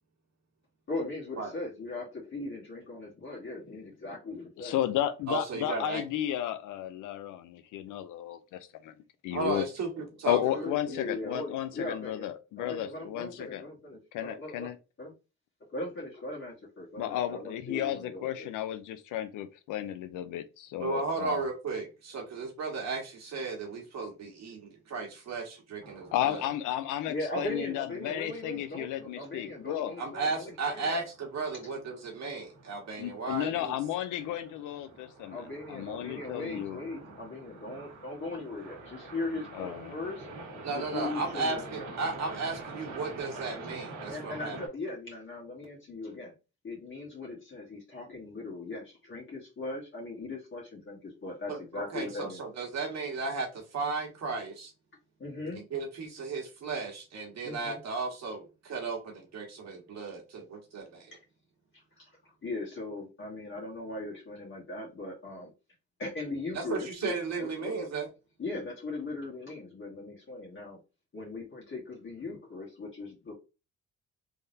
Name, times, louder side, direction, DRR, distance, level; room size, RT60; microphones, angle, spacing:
voice 1, 0.9-4.8 10.5-12.3 12.6-14.7 15.0-15.1 15.7-18.5 27.1-31.0 34.2-34.3 35.3-40.3 40.7-41.9 44.1-46.3 46.6-52.4 55.2-55.6 57.4-57.8 62.0-62.1 62.4-65.5 66.0-67.9 68.4-70.8 71.1-73.3, left 2 dB, 40° left, 1.7 m, -39 dB
voice 2, 4.6-8.9 9.2-9.6 10.3-13.6 14.1-14.8 17.0-21.5 26.1-29.9 33.0-35.4 35.7-36.8 39.5-39.9, left 12 dB, 90° left, 0.6 m, -33 dB
voice 3, 5.3-6.0 9.3-11.0 20.8-26.4 30.0-33.8 40.6-44.6 51.5-54.7 55.5-61.1 66.5-68.1, right 4 dB, 60° right, 1.4 m, -35 dB
sound 1, 25.8-44.7, right 3 dB, 80° right, 1.6 m, -47 dB
3.5 x 3.5 x 2.7 m
cardioid pair, 90°, 30 cm